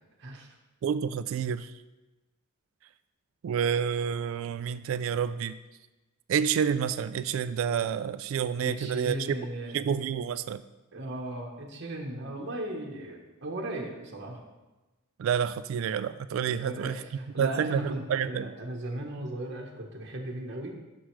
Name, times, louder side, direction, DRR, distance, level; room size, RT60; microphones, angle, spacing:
voice 1, 0.2-0.6 8.6-9.8 10.9-14.4 16.5-20.8, right 1 dB, 55° right, 0 dB, 1.1 m, -37 dB
voice 2, 0.8-1.7 3.4-5.6 6.3-9.2 9.7-10.6 15.2-17.0 17.4-18.5, right 7 dB, 75° right, 15 dB, 0.3 m, -29 dB
9.9 x 6.2 x 3.2 m, 1.1 s
head